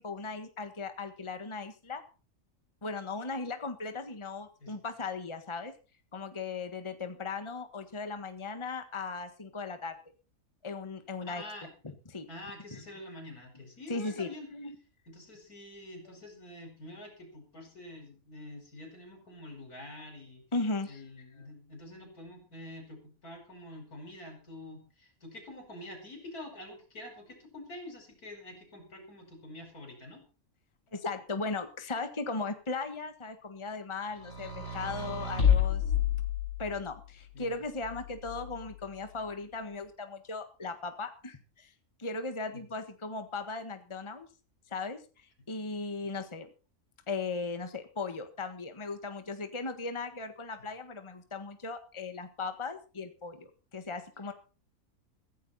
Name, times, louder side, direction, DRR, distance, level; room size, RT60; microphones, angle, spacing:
voice 1, 0.0-2.0 2.8-5.7 6.1-10.0 10.6-11.4 12.1-12.3 12.7-12.8 13.9-14.7 20.5-21.0 30.9-35.8 36.6-41.7 42.0-44.3 44.7-46.5 47.1-54.3, left 3 dB, 20° left, 8 dB, 1.5 m, -37 dB
voice 2, 11.3-11.7 12.3-14.5 15.1-20.4 20.9-30.2 37.3-37.5 42.5-42.6 45.9-46.1, left 1 dB, 80° left, 4 dB, 5.9 m, -47 dB
sound 1, 34.2-36.9 37.8-38.8, left 8 dB, 65° left, 7.5 m, -29 dB
16.0 x 15.0 x 4.3 m, 0.35 s
omnidirectional pair, 1.6 m